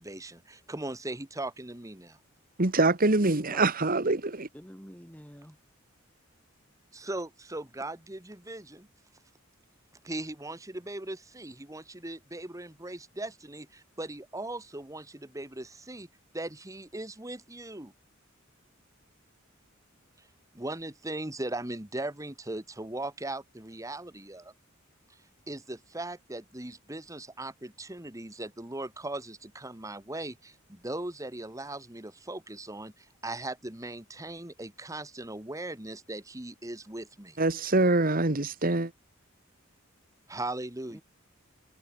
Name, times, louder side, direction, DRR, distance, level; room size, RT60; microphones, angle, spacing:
voice 1, 0.0-2.2 6.9-8.9 10.0-16.1 16.3-17.9 20.5-24.5 25.5-37.4 40.3-41.0, right 2 dB, 15° right, 1.7 m, -39 dB
voice 2, 2.6-4.5 37.4-38.9, right 2 dB, 45° right, 1.7 m, -24 dB
voice 3, 3.2-3.7 4.5-5.6 40.9-41.0, equal, 10° left, 5.9 m, -47 dB
head